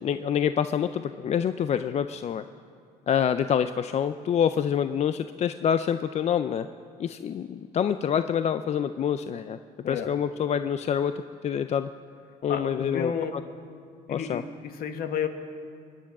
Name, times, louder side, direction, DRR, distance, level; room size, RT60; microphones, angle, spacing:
voice 1, 0.0-2.4 3.1-6.7 7.0-9.6 9.9-11.1 11.4-11.9 12.4-13.4 14.1-14.4, left 8 dB, 40° left, 11 dB, 0.4 m, -26 dB
voice 2, 12.5-13.4 14.1-15.3, left 7 dB, 60° left, 7 dB, 1.3 m, -31 dB
23.5 x 10.0 x 6.0 m, 2.3 s
cardioid pair, 110°, 17 cm